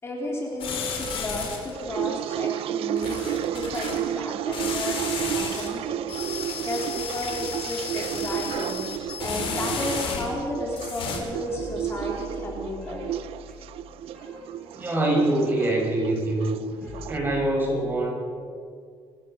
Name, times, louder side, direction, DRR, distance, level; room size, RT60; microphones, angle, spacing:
voice 1, 0.0-6.0 6.6-13.1, left 1 dB, 25° left, -1 dB, 3.7 m, -33 dB
sound 1, 0.6-1.7 3.0-4.0 4.5-5.7 6.1-10.4 10.7-11.2, left 6 dB, 70° left, 4.4 m, -33 dB
sound 2, 1.5-17.2, right 12 dB, 80° right, 0.5 m, -32 dB
sound 3, 10.4-17.4, left 1 dB, 10° left, 7.7 m, -44 dB
voice 2, 14.7-16.6 17.1-18.1, right 1 dB, 20° right, -1 dB, 5.9 m, -24 dB
27.0 x 15.0 x 6.7 m, 2.2 s
cardioid pair, 150°, 10 cm